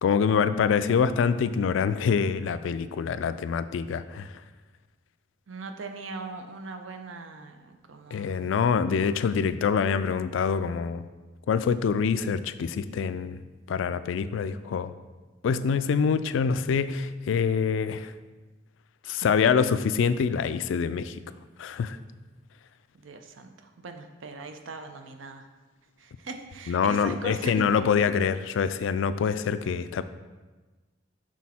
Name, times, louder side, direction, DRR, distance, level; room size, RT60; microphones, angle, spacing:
voice 1, 0.0-4.3 8.1-11.1 11.5-13.4 13.7-14.9 15.4-18.1 19.1-21.2 21.6-22.0 26.7-30.0, left 6 dB, 80° left, 13 dB, 0.3 m, -25 dB
voice 2, 5.5-8.5 19.0-19.3 22.9-25.4 26.0-27.8, right 3 dB, 90° right, 6 dB, 0.6 m, -40 dB
6.2 x 4.1 x 4.2 m, 1.3 s
head